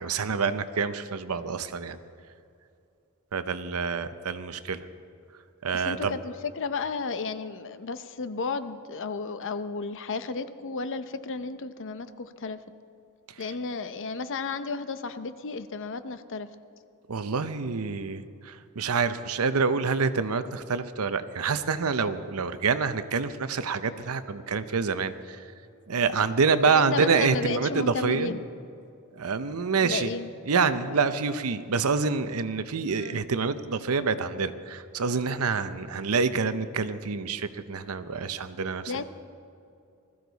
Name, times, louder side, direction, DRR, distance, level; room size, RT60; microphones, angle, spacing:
voice 1, 0.0-2.0 3.3-4.9 5.6-6.1 17.1-25.5 25.9-28.3 29.2-30.1 30.5-38.9, right 5 dB, 75° right, 12 dB, 0.7 m, -27 dB
voice 2, 5.7-12.6 13.4-16.5 26.6-28.5 29.8-30.3 32.9-33.2 38.9-39.0, left 4 dB, 60° left, 11 dB, 0.7 m, -33 dB
20.0 x 14.0 x 4.0 m, 2.6 s
head